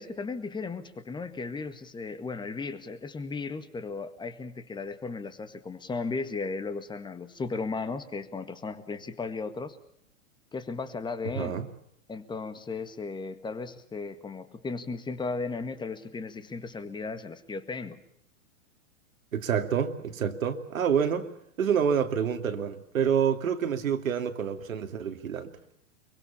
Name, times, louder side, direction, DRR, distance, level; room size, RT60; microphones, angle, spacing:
voice 1, 0.0-9.8 10.5-11.6 12.1-18.0, left 4 dB, 10° left, 11 dB, 1.8 m, -35 dB
voice 2, 19.3-21.3 21.6-25.5, right 7 dB, 85° right, 6 dB, 2.8 m, -27 dB
25.0 x 23.5 x 7.1 m, 0.73 s
hypercardioid pair, 125°, 39 cm